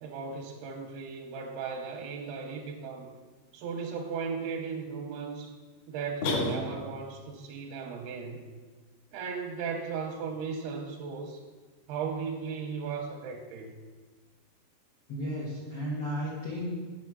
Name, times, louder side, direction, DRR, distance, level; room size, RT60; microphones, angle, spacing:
voice 1, 0.0-3.1 3.5-5.5 5.9-8.5 9.1-11.4 11.9-13.7, right 5 dB, 80° right, 3 dB, 2.3 m, -36 dB
sound 1, 6.2-7.1, left 2 dB, 65° left, 2.1 m, -30 dB
voice 2, 15.1-16.7, equal, 85° left, -5 dB, 1.2 m, -34 dB
9.4 x 6.5 x 5.9 m, 1.4 s
omnidirectional pair, 5.3 m